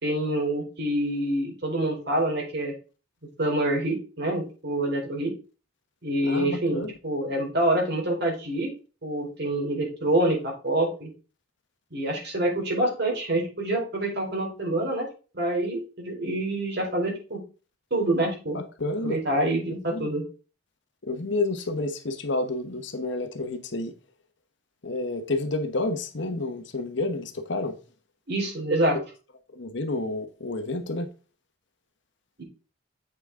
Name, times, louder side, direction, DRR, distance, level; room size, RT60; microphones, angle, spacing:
voice 1, 0.0-2.7 3.4-5.3 6.0-8.7 9.0-11.1 11.9-15.0 15.3-17.4 17.9-18.6 19.0-20.2 28.3-29.0 32.4-32.5, right 1 dB, 55° right, 3.2 m, -26 dB
voice 2, 6.2-6.9 18.5-19.2 19.9-20.1 21.0-23.9 24.8-27.7 29.5-31.1, left 2 dB, 60° left, 1.1 m, -30 dB
8.1 x 5.8 x 3.6 m
head